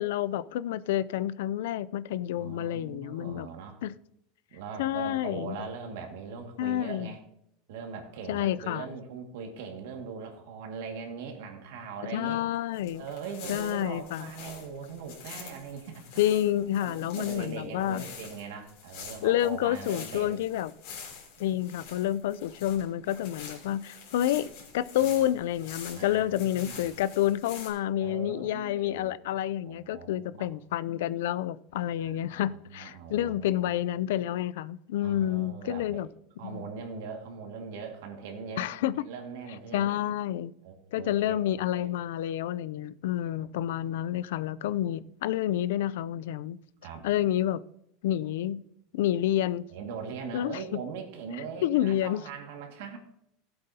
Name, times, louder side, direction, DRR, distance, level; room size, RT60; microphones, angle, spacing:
voice 1, 0.0-3.5 3.8-3.9 4.8-5.6 6.6-7.1 8.3-8.9 12.1-13.0 13.5-14.3 16.2-18.0 19.2-20.7 21.4-24.5 24.7-36.1 36.4-36.6 38.6-38.9 39.7-40.5 40.9-46.6 47.0-47.6 48.0-48.6 48.9-49.7 50.3-50.8 51.6-52.2, left 12 dB, 75° left, 0.4 m, -29 dB
voice 2, 2.4-3.8 4.5-7.2 7.7-12.4 13.0-16.2 16.8-20.4 21.4-21.6 25.0-25.3 25.9-26.9 28.0-29.1 29.6-30.5 32.0-33.7 35.0-36.0 36.4-39.9 40.6-41.9 46.8-47.0 49.7-53.0, right 5 dB, 65° right, 1.9 m, -41 dB
sound 1, 12.7-27.7, left 6 dB, 55° left, 3.2 m, -46 dB
17.0 x 7.8 x 2.8 m
supercardioid pair, 175°, 0 cm